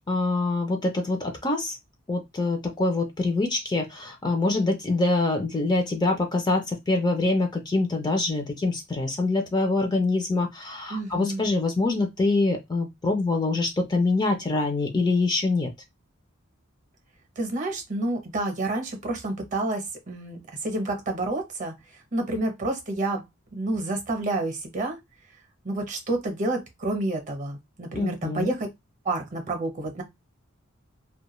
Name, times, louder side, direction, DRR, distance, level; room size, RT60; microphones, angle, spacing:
voice 1, 0.1-1.8 2.1-15.7 27.9-28.5, left 2 dB, 20° left, 0.4 m, -25 dB
voice 2, 10.9-11.5 17.4-21.7 22.1-23.2 23.5-25.0 25.6-28.7 29.0-30.0, right 2 dB, 35° right, 0.7 m, -29 dB
2.3 x 2.2 x 3.0 m
head